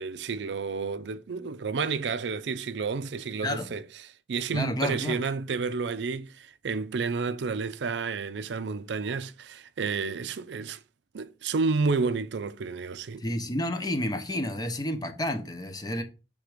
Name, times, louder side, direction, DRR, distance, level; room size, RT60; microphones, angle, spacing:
voice 1, 0.0-3.8 4.3-10.8 11.1-13.2, right 4 dB, 85° right, 0.5 m, -30 dB
voice 2, 4.5-5.2 13.2-16.0, left 1 dB, 25° left, 0.8 m, -30 dB
6.6 x 3.5 x 4.9 m
head